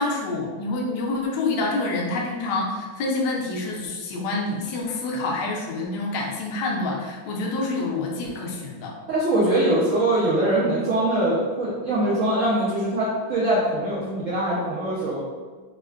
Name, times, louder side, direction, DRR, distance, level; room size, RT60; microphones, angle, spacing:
voice 1, 0.0-8.9, left 2 dB, 75° left, -1 dB, 0.9 m, -27 dB
voice 2, 9.1-15.2, right 1 dB, 85° right, -10 dB, 0.7 m, -22 dB
3.5 x 2.1 x 2.3 m, 1.4 s
omnidirectional pair, 2.2 m